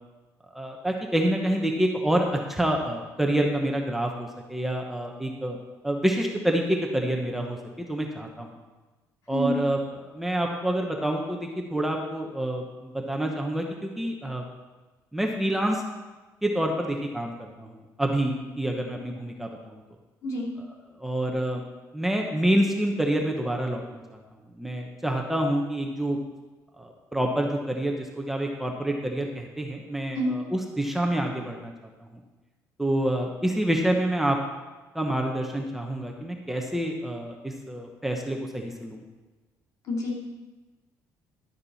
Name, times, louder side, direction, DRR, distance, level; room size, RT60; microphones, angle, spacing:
voice 1, 0.5-5.6 5.8-8.6 9.3-9.8 10.1-14.4 15.1-15.8 16.4-19.8 21.0-21.6 21.9-24.2 24.6-26.2 26.8-31.7 32.0-32.1 32.8-34.4 34.9-39.0, right 1 dB, 5° right, 1 dB, 1.0 m, -27 dB
voice 2, 20.2-20.6 30.1-30.3 39.9-40.2, equal, 60° left, -2 dB, 3.0 m, -28 dB
12.0 x 8.7 x 4.2 m, 1.2 s
cardioid pair, 135°, 7 cm